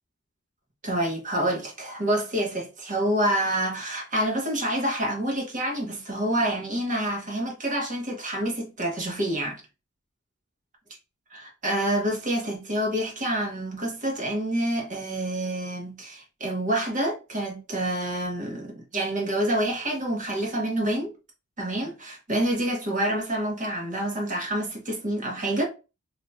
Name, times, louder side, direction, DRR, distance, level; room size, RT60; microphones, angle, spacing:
voice 1, 0.8-9.6 11.3-21.1 21.6-25.6, right 1 dB, 35° right, 1.1 m, -27 dB
4.1 x 2.8 x 2.3 m
head